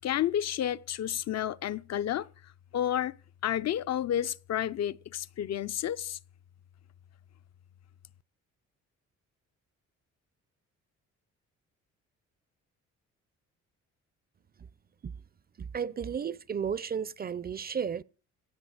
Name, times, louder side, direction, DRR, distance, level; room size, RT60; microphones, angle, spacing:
voice 1, 0.0-2.3 2.7-3.1 3.4-6.2, left 11 dB, 60° left, 0.6 m, -30 dB
voice 2, 15.7-18.0, right 7 dB, 30° right, 0.5 m, -33 dB
16.0 x 7.7 x 6.5 m
cardioid pair, 90°, 30 cm